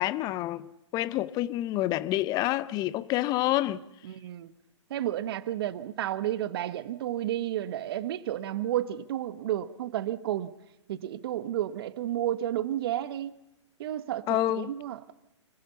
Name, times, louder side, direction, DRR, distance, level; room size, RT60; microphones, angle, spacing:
voice 1, 0.0-3.8 14.3-14.7, left 15 dB, 25° left, 0.7 m, -28 dB
voice 2, 4.0-4.5 4.9-10.5 10.9-13.4 13.8-15.1, right 12 dB, 50° right, 1.1 m, -31 dB
25.5 x 15.5 x 6.9 m
hypercardioid pair, 130°, 16 cm